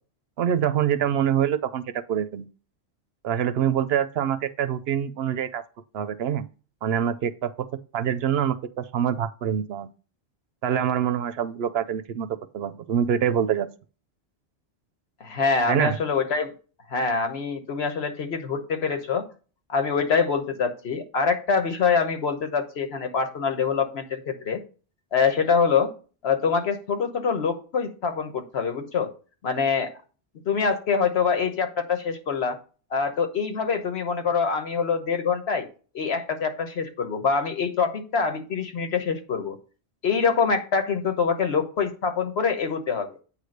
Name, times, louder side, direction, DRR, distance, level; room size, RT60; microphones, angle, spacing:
voice 1, 0.4-1.8 2.1-2.5 3.2-5.6 5.9-6.5 6.8-7.5 7.9-9.9 10.6-12.3 12.5-13.7 15.7-16.0, right 9 dB, 70° right, 0.8 m, -25 dB
voice 2, 15.2-16.5 16.9-19.3 19.7-24.6 25.1-25.9 26.2-29.1 29.4-29.9 30.5-32.6 32.9-35.7 35.9-39.6 40.0-43.1, left 5 dB, 70° left, 1.3 m, -25 dB
8.6 x 3.3 x 6.4 m
omnidirectional pair, 1.1 m